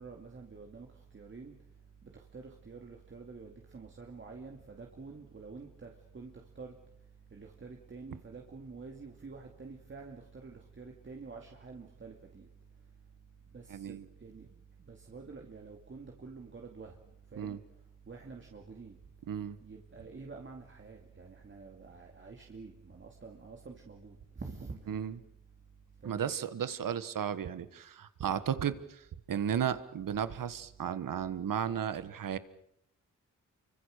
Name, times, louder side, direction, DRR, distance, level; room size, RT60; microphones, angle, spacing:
voice 1, 0.0-1.5 2.1-6.7 7.3-12.5 13.5-14.5 14.8-17.0 17.3-17.6 18.1-19.0 19.6-25.1 26.0-26.3, right 4 dB, 35° right, 1 dB, 2.6 m, -48 dB
voice 2, 13.7-14.0 17.4-17.6 19.3-19.6 24.9-25.1 26.0-32.4, right 8 dB, 90° right, 13 dB, 1.5 m, -34 dB
29.5 x 24.5 x 6.7 m, 0.77 s
wide cardioid pair, 150°, 32 cm